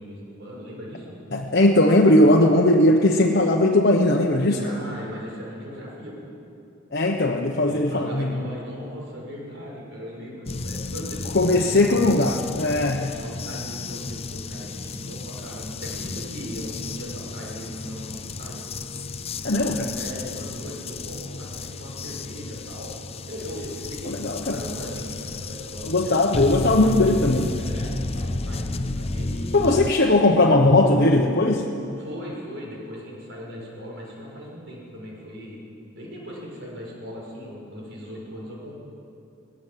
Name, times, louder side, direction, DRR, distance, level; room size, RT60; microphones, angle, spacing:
voice 1, 0.0-1.1 4.5-6.3 7.6-12.2 13.2-18.6 19.9-22.9 23.3-26.1 27.5-29.7 32.0-35.6 35.9-38.8, equal, 60° right, -3 dB, 6.7 m, -38 dB
voice 2, 1.3-4.6 6.9-8.4 11.3-13.1 19.4-19.9 24.1-24.6 25.9-27.5 29.5-31.6, left 1 dB, 50° left, 0 dB, 1.1 m, -19 dB
sound 1, 10.5-29.9, left 3 dB, 30° left, 0.6 m, -32 dB
19.5 x 17.5 x 7.6 m, 2.6 s
head